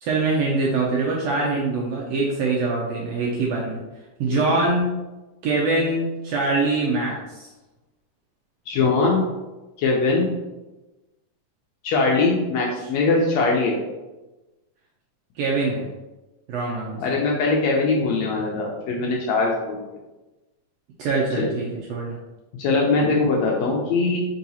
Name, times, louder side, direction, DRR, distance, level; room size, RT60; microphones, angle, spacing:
voice 1, 0.0-3.8 4.2-4.9 5.4-7.5 12.8-12.9 15.4-15.8 16.5-17.2 21.0-22.2, right 3 dB, 75° right, -3 dB, 1.5 m, -24 dB
voice 2, 8.7-9.2 9.8-10.3 11.8-13.8 17.0-19.8 21.4-21.5 22.6-24.2, left 3 dB, 75° left, -1 dB, 1.6 m, -21 dB
4.7 x 2.8 x 3.9 m, 1.1 s
omnidirectional pair, 3.5 m